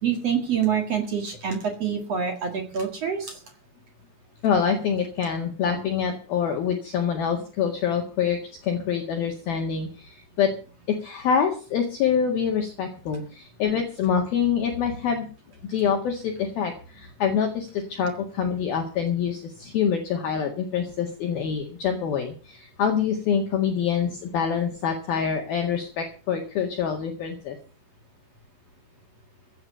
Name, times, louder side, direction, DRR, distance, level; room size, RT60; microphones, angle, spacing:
voice 1, 0.0-3.4, right 7 dB, 55° right, 5 dB, 1.8 m, -26 dB
voice 2, 4.4-10.5 10.9-15.3 15.7-27.6, left 7 dB, 60° left, 2 dB, 3.2 m, -26 dB
16.0 x 9.1 x 6.8 m, 0.37 s
omnidirectional pair, 5.8 m